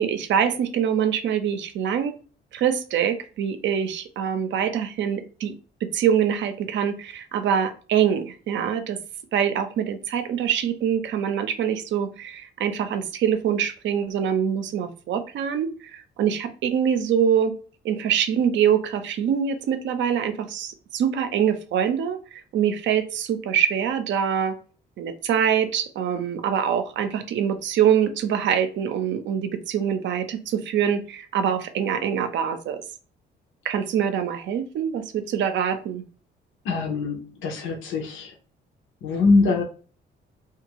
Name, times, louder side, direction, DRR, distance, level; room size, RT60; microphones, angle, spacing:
voice 1, 0.0-2.1 2.5-5.5 5.8-9.0 9.3-17.5 17.8-24.6 25.0-32.8 33.6-36.0, right 8 dB, 70° right, 9 dB, 0.5 m, -24 dB
voice 2, 36.6-38.3 39.0-39.6, left 3 dB, 80° left, 0 dB, 0.7 m, -23 dB
2.6 x 2.4 x 2.8 m, 0.39 s
cardioid pair, 90°, 20 cm